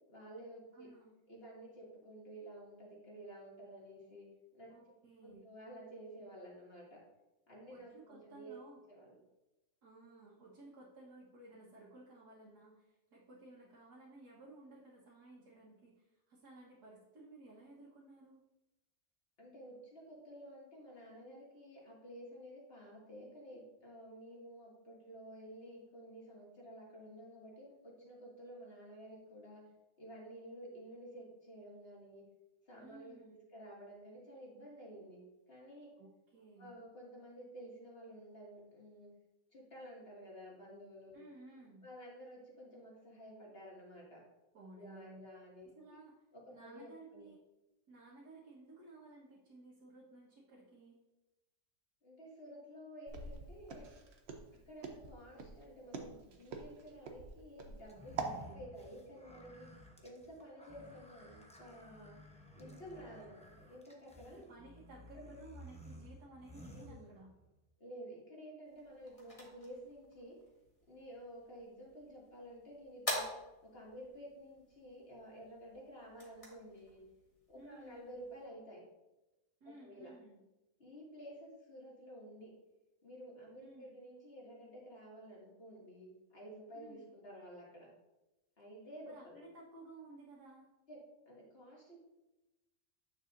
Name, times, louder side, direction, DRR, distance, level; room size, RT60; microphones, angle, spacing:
voice 1, 0.1-0.9 1.3-4.3 4.5-4.7 5.2-7.0 7.5-8.6 8.9-9.1 19.4-29.6 30.0-32.2 32.7-35.2 35.5-35.9 36.6-39.1 39.5-41.2 41.8-44.2 44.7-46.0 46.3-47.3 52.0-53.9 54.7-58.2 58.5-59.7 60.0-62.1 62.6-64.5 65.1-65.4 66.7-67.1 67.8-70.4 70.9-73.3 73.6-77.0 77.5-78.8 79.8-80.1 80.8-82.5 83.0-87.9 88.6-89.4 90.9-91.0 91.3-92.0, equal, 40° left, -4 dB, 2.5 m, -52 dB
voice 2, 0.7-1.2 4.7-5.4 7.7-8.8 9.8-18.4 32.8-33.4 36.0-36.7 41.1-41.9 44.5-45.2 45.8-46.1 46.5-47.4 47.9-51.0 57.9-58.7 64.3-67.3 77.5-78.0 79.6-80.4 83.6-84.0 86.7-87.1 89.1-90.7, right 2 dB, 85° right, -7 dB, 1.9 m, -56 dB
Walk footsteps, 53.1-58.4, right 4 dB, 50° right, 1.0 m, -44 dB
sound 1, 57.9-67.6, equal, 5° left, 0.6 m, -55 dB
sound 2, 68.7-78.4, left 1 dB, 20° left, 1.6 m, -48 dB
9.3 x 6.6 x 2.6 m, 1.0 s
omnidirectional pair, 1.6 m